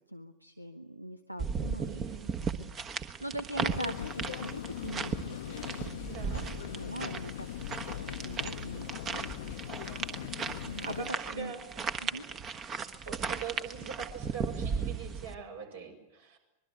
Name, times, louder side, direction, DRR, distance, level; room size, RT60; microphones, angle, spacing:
voice 1, 0.0-2.0 2.6-6.0 6.3-6.4 6.7-7.5 7.9-9.6 10.7-11.5 12.0-12.2, right 1 dB, 90° right, 10 dB, 1.0 m, -42 dB
sound 1, 1.4-15.3, right 6 dB, 25° right, 1.5 m, -36 dB
voice 2, 1.8-2.4 6.1-6.4 9.9-10.3 10.9-11.6 12.1-12.2 13.0-16.4, right 6 dB, 65° right, 3 dB, 6.1 m, -43 dB
sound 2, 3.7-11.1, left 12 dB, 55° left, 0.9 m, -40 dB
25.0 x 22.0 x 8.1 m, 0.96 s
figure-of-eight pair, 90°, 0 cm